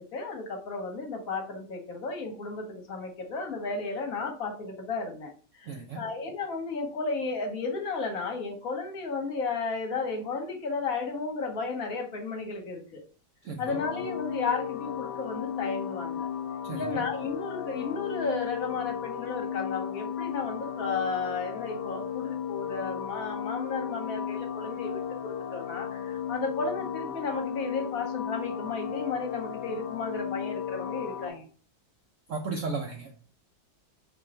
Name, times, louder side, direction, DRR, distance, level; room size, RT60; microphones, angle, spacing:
voice 1, 0.0-13.0 13.6-16.3 16.7-31.4, left 4 dB, 60° left, 3 dB, 1.2 m, -33 dB
voice 2, 5.7-6.0 13.4-13.7 16.6-16.8 32.3-33.3, right 4 dB, 75° right, 2 dB, 0.7 m, -35 dB
sound 1, 13.7-31.3, left 8 dB, 75° left, 1.1 m, -35 dB
3.8 x 2.9 x 4.1 m, 0.40 s
omnidirectional pair, 1.9 m